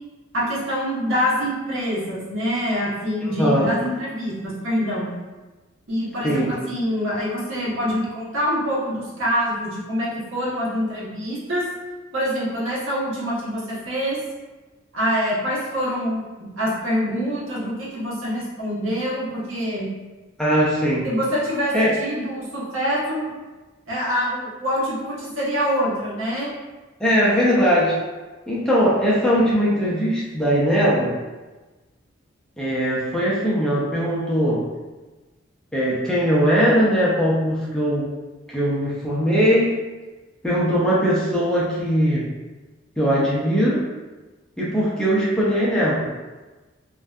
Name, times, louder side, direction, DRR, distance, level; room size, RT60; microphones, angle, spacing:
voice 1, 0.3-5.1 5.9-11.6 12.1-14.2 14.9-16.3 16.6-19.9 21.0-21.7 22.0-23.3 23.9-26.5, equal, 80° right, -7 dB, 0.9 m, -25 dB
voice 2, 3.4-3.7 6.2-6.5 20.4-21.1 21.7-21.9 27.0-28.0 28.5-31.1 32.6-34.6 35.7-38.1 38.5-39.7 40.4-42.3 43.0-43.8 44.6-46.1, equal, 5° left, -7 dB, 0.4 m, -20 dB
2.6 x 2.2 x 2.3 m, 1.2 s
head